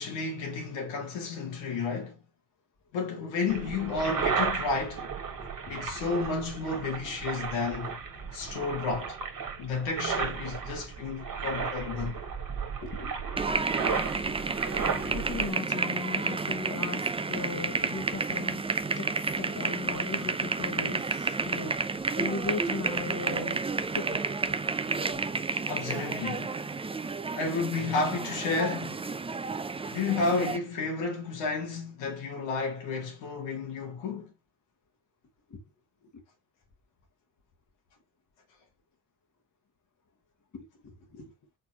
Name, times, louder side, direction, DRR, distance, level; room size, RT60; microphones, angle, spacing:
voice 1, 0.0-2.2 2.9-5.1 5.7-8.0 8.3-9.2 9.6-12.2 25.7-26.5 27.3-29.0 29.9-34.3, left 4 dB, 80° left, 2.0 m, -31 dB
sound 1, 3.5-15.5, right 6 dB, 45° right, 1.6 m, -34 dB
voice 2, 12.8-13.1 14.0-18.6 19.0-19.1 19.4-21.7 22.1-23.6 23.9-24.6 24.9-25.2 35.5-35.6 40.5-41.3, left 4 dB, 45° left, 1.4 m, -38 dB
sound 2, 13.4-30.6, right 4 dB, 15° right, 0.5 m, -31 dB
4.4 x 4.2 x 2.8 m
hypercardioid pair, 50°, 43 cm